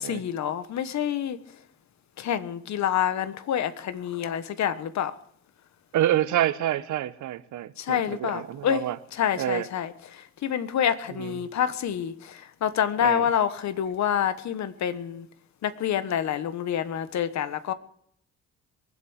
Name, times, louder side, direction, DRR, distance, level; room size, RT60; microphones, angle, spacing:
voice 1, 0.0-1.6 2.2-5.2 7.8-8.8 9.1-15.3 15.6-17.7, left 9 dB, 65° left, 1.3 m, -27 dB
voice 2, 5.9-9.0 9.4-9.7 11.2-11.3 13.0-13.3, right 12 dB, 75° right, 1.0 m, -27 dB
22.5 x 8.2 x 6.4 m
cardioid pair, 90°, 30 cm